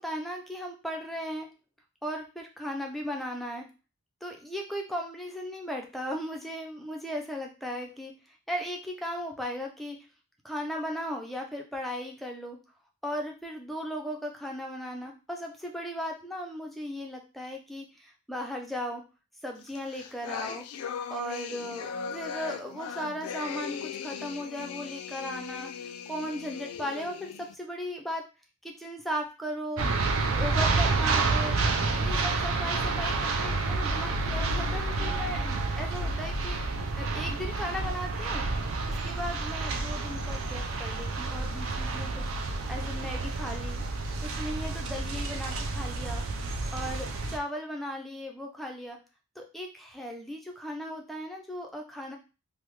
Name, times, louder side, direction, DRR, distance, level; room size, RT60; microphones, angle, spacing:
voice 1, 0.0-1.5 2.0-3.7 4.2-10.0 10.4-12.6 13.0-19.0 19.4-20.6 21.1-25.7 26.1-28.2 28.6-29.9 30.3-31.6 32.0-36.6 37.0-38.4 38.9-43.8 44.2-46.3 46.7-49.0 49.4-52.2, equal, ahead, 1 dB, 0.4 m, -37 dB
sound 1, 19.7-27.5, left 7 dB, 85° left, 0.3 m, -38 dB
sound 2, 29.8-47.4, right 3 dB, 60° right, 0.4 m, -29 dB
3.3 x 2.0 x 3.1 m, 0.32 s
head